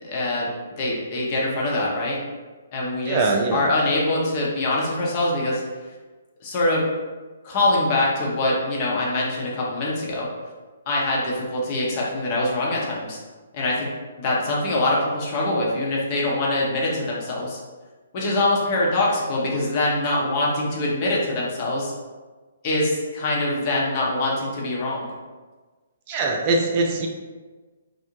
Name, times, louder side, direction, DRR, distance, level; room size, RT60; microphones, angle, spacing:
voice 1, 0.0-0.5 0.8-2.2 2.7-5.6 6.4-6.9 7.4-10.3 10.9-13.2 13.5-13.9 14.2-17.6 18.1-21.9 22.6-25.2, left 2 dB, 35° left, -4 dB, 0.7 m, -24 dB
voice 2, 3.1-3.6 26.1-27.1, right 3 dB, 35° right, 1 dB, 0.3 m, -22 dB
2.5 x 2.0 x 3.0 m, 1.3 s
figure-of-eight pair, 130°, 0 cm